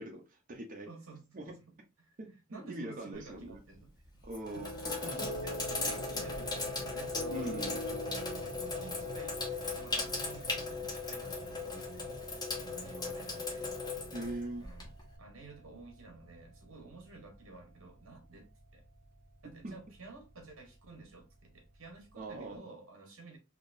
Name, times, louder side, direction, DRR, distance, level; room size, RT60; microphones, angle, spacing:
voice 1, 0.0-0.9 1.3-1.5 2.2-3.6 4.2-5.3 7.3-7.8 14.1-14.6 19.6-19.7 22.2-22.7, right 1 dB, 40° right, 0.7 m, -42 dB
voice 2, 0.9-1.4 1.7-3.9 4.5-4.8 5.4-9.4 9.7-13.7 14.6-18.8 19.4-23.4, right 3 dB, 80° right, 1.3 m, -52 dB
Sink (filling or washing), 3.1-3.6 4.2-15.1, left 3 dB, 20° left, 1.0 m, -38 dB
sound 1, 4.5-22.5, equal, 90° left, 1.5 m, -46 dB
3.6 x 2.9 x 2.6 m
head